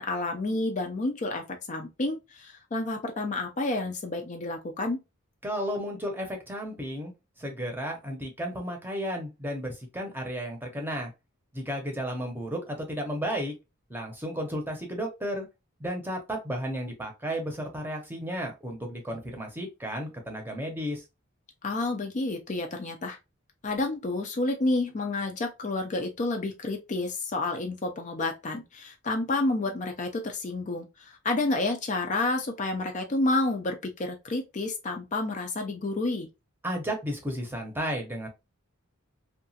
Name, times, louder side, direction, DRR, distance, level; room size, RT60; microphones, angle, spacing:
voice 1, 0.0-5.0 21.6-23.2 23.6-36.3, left 2 dB, 35° left, 0.4 m, -30 dB
voice 2, 5.4-7.1 7.4-11.1 11.5-13.5 13.9-15.5 15.8-21.0 36.6-38.3, equal, 10° right, 0.7 m, -33 dB
2.9 x 2.3 x 2.7 m
head